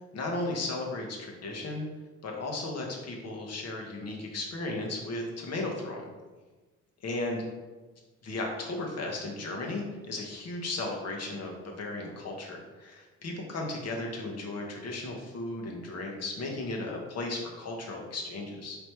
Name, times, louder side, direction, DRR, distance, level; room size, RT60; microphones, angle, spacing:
voice 1, 0.1-1.9 2.2-6.1 7.0-7.4 8.2-18.8, left 2 dB, 55° left, 0 dB, 1.0 m, -35 dB
3.4 x 2.9 x 4.4 m, 1.2 s
cardioid pair, 90°, 30 cm